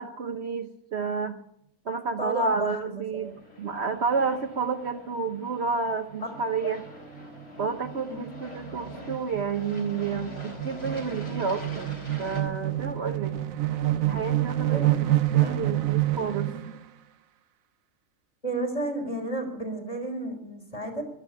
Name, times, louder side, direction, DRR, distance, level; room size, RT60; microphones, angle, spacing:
voice 1, 0.0-1.4 1.8-3.3 3.6-6.9 7.6-13.3 14.0-16.5, right 5 dB, 55° right, 6 dB, 1.1 m, -30 dB
voice 2, 2.2-3.3 6.6-6.7 8.1-8.3 14.7-15.1 15.4-15.6 18.4-21.0, right 2 dB, 25° left, 2 dB, 3.5 m, -32 dB
Aircraft, 3.2-12.4, left 1 dB, 45° left, 4.2 m, -44 dB
sound 1, 6.1-6.4 6.8-6.9 7.2-16.8, right 14 dB, 75° right, 1.2 m, -28 dB
13.5 x 12.0 x 8.5 m, 0.74 s
omnidirectional pair, 1.5 m